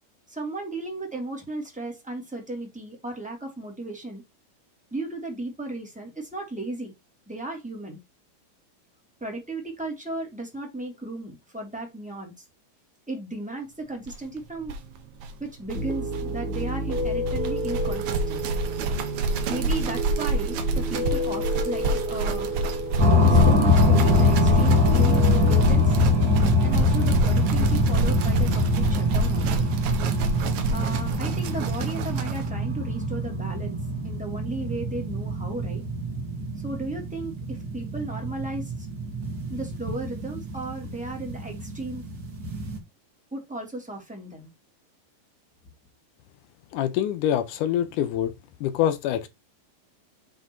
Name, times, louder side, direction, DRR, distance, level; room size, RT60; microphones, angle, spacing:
voice 1, 0.3-4.2 4.9-6.9 7.3-8.0 9.2-12.4 13.1-14.7 15.4-18.4 19.5-22.5 23.2-26.0 26.6-29.6 30.7-33.8 34.0-35.8 36.6-38.9 39.5-42.0 43.3-44.5, right 2 dB, 5° right, 2.0 m, -35 dB
sound 1, 14.1-14.2 14.4-14.5 14.6-32.5, right 2 dB, 65° right, 2.1 m, -29 dB
sound 2, 15.7-25.6, right 1 dB, 85° right, 0.5 m, -31 dB
sound 3, 23.0-42.8, left 2 dB, 35° right, 2.2 m, -23 dB
voice 2, 46.7-48.3 48.6-49.3, left 11 dB, 75° left, 2.0 m, -25 dB
8.0 x 3.6 x 4.5 m
omnidirectional pair, 4.0 m